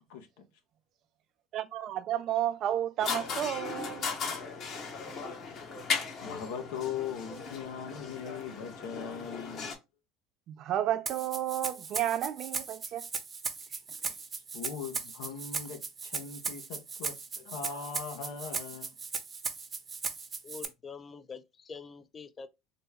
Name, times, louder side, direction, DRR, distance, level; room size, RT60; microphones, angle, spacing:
voice 1, 1.5-4.1 10.5-13.1, right 11 dB, 55° right, 0.5 m, -32 dB
sound 1, 3.0-9.8, left 5 dB, 55° left, 1.1 m, -37 dB
voice 2, 6.2-9.7 13.9-14.1 14.5-18.9, left 7 dB, 80° left, 0.9 m, -40 dB
Rattle (instrument), 11.1-20.7, right 5 dB, 30° right, 0.8 m, -37 dB
voice 3, 20.4-22.5, left 5 dB, 30° left, 0.5 m, -45 dB
4.0 x 2.2 x 3.5 m
supercardioid pair, 95°, 0 cm